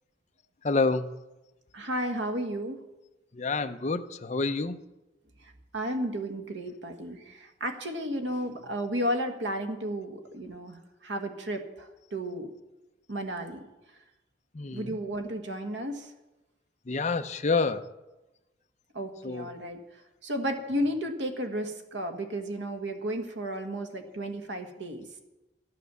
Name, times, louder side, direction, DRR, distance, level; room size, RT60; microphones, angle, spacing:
voice 1, 0.6-1.1 3.3-4.8 14.5-15.0 16.9-17.9 19.2-19.5, left 3 dB, 40° left, 8 dB, 0.6 m, -28 dB
voice 2, 1.7-2.8 5.4-12.5 13.1-13.7 14.7-16.1 18.9-25.1, equal, 80° right, 5 dB, 1.5 m, -33 dB
13.0 x 8.6 x 6.8 m, 1.0 s
head